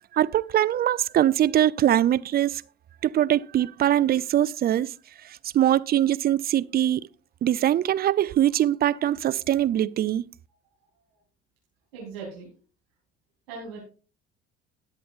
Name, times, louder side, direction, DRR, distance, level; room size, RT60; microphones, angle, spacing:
voice 1, 0.1-2.6 3.0-4.9 5.5-7.0 7.4-10.2, right 11 dB, 30° right, 0.5 m, -22 dB
voice 2, 11.9-12.5 13.5-13.8, right 4 dB, 70° right, 4.0 m, -39 dB
19.0 x 7.9 x 2.5 m
figure-of-eight pair, 55°, 31 cm